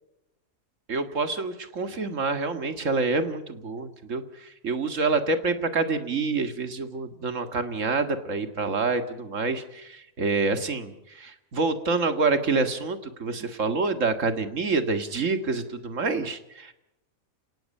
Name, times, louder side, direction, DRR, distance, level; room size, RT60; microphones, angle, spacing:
voice 1, 0.9-16.7, right 3 dB, 60° right, 8 dB, 2.2 m, -27 dB
30.0 x 18.5 x 5.5 m, 0.87 s
omnidirectional pair, 1.5 m